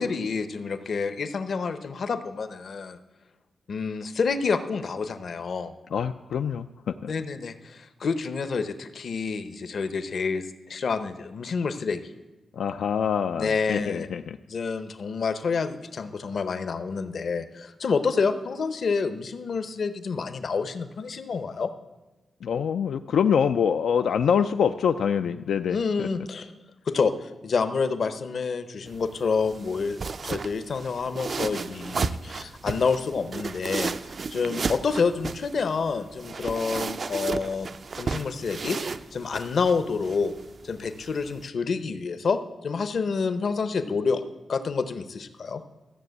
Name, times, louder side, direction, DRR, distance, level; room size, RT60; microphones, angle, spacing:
voice 1, 0.0-3.0 3.7-5.7 7.1-12.0 13.3-14.1 14.5-21.7 25.7-26.5 26.9-33.9 34.3-38.8 39.1-40.3 40.6-44.2 44.5-45.6, left 5 dB, 50° left, 11 dB, 0.8 m, -28 dB
voice 2, 5.9-7.1 12.5-14.4 22.4-26.1, left 7 dB, 85° left, 9 dB, 0.4 m, -25 dB
sound 1, 28.9-41.5, right 4 dB, 40° right, 0.4 m, -34 dB
13.5 x 6.9 x 8.0 m, 1.1 s
wide cardioid pair, 155°, 0 cm